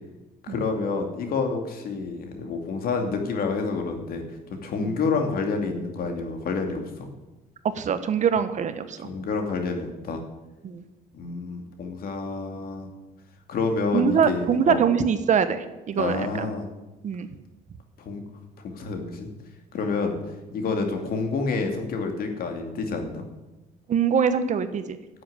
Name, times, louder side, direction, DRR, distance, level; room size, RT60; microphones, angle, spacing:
voice 1, 0.4-4.2 4.6-7.1 9.0-10.2 11.1-12.9 13.5-14.8 16.0-16.7 18.0-18.2 18.6-19.3 19.7-20.2 20.5-23.2, left 4 dB, 60° left, 4 dB, 2.6 m, -28 dB
voice 2, 7.7-9.1 10.6-10.8 13.9-16.5 17.0-17.3 23.9-25.0, right 7 dB, 45° right, 11 dB, 1.1 m, -23 dB
12.0 x 7.6 x 9.5 m, 1.1 s
cardioid pair, 110°, 17 cm